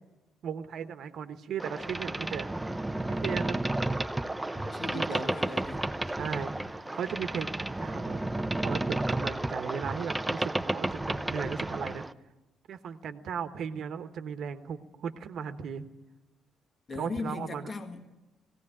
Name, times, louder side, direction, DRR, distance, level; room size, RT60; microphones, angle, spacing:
voice 1, 0.4-2.5 3.2-3.6 4.9-5.3 6.2-8.2 8.6-12.1 12.7-15.9 16.9-17.7, right 7 dB, 65° right, 10 dB, 1.2 m, -36 dB
Boat Water vehicle, 1.6-12.1, right 1 dB, 10° right, 0.7 m, -32 dB
voice 2, 4.5-5.9 16.9-18.1, left 4 dB, 35° left, 3 dB, 1.9 m, -38 dB
18.5 x 16.5 x 9.9 m, 1.1 s
cardioid pair, 90°, 0 cm